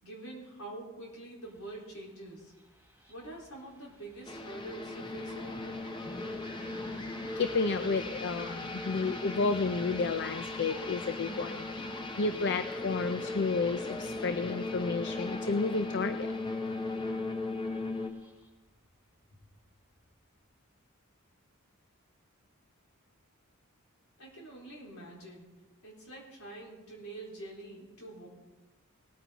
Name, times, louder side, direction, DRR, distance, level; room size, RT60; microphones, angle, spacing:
voice 1, 0.0-2.5 3.1-5.8 24.2-25.5 25.8-28.3, right 2 dB, 75° left, -3 dB, 4.2 m, -46 dB
sound 1, 1.4-20.4, equal, 10° right, 4.2 m, -56 dB
sound 2, 4.2-18.1, left 2 dB, 20° left, 0.8 m, -37 dB
voice 2, 7.4-16.3, left 4 dB, 50° left, 9 dB, 0.5 m, -31 dB
19.0 x 9.2 x 4.0 m, 1.1 s
head